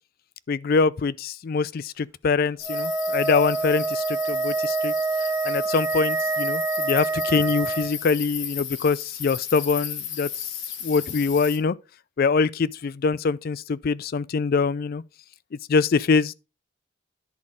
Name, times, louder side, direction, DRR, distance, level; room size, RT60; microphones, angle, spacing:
voice 1, 0.5-4.9 5.4-10.3 10.8-11.8 12.2-15.0 15.7-16.3, left 4 dB, 50° left, 0.4 m, -24 dB
sound 1, 2.6-11.6, left 9 dB, 90° left, 1.4 m, -34 dB
Wind instrument woodwind instrument, 2.6-8.0, right 4 dB, 15° right, 0.5 m, -26 dB
10.5 x 4.2 x 4.8 m
head